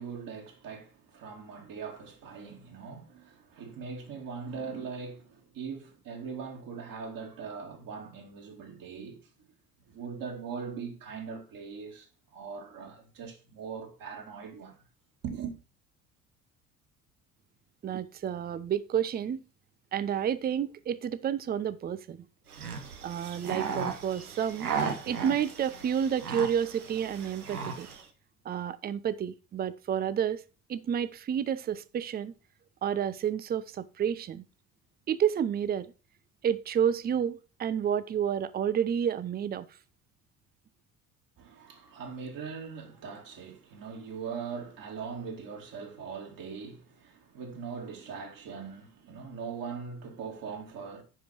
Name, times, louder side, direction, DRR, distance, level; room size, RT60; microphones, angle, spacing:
voice 1, 0.0-9.3 9.9-12.1 12.3-14.8 15.2-15.6 41.4-51.0, right 6 dB, 50° right, 2.8 m, -41 dB
voice 2, 17.8-19.5 19.9-22.3 23.0-24.7 25.1-27.9 28.4-30.4 30.7-32.3 32.8-34.4 35.1-35.9 36.4-39.7, right 8 dB, 20° right, 0.6 m, -30 dB
sound 1, 22.5-28.0, right 5 dB, 85° right, 1.1 m, -36 dB
10.0 x 5.2 x 4.5 m
figure-of-eight pair, 60°, 44 cm